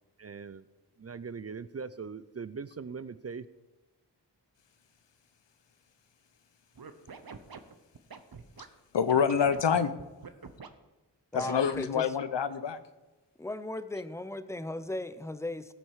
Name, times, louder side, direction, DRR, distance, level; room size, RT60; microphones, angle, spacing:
voice 1, 0.2-0.6 1.0-3.5, right 5 dB, 35° right, 16 dB, 0.4 m, -40 dB
Scratching (performance technique), 6.7-8.7 9.1-10.7 11.4-12.0, right 5 dB, 55° right, 0.9 m, -45 dB
voice 2, 8.9-9.9 11.3-12.8, left 7 dB, 85° left, 12 dB, 0.8 m, -26 dB
voice 3, 11.3-12.1 13.4-15.7, left 2 dB, 5° left, 13 dB, 0.6 m, -36 dB
18.0 x 6.2 x 4.8 m, 1.1 s
wide cardioid pair, 60°, 42 cm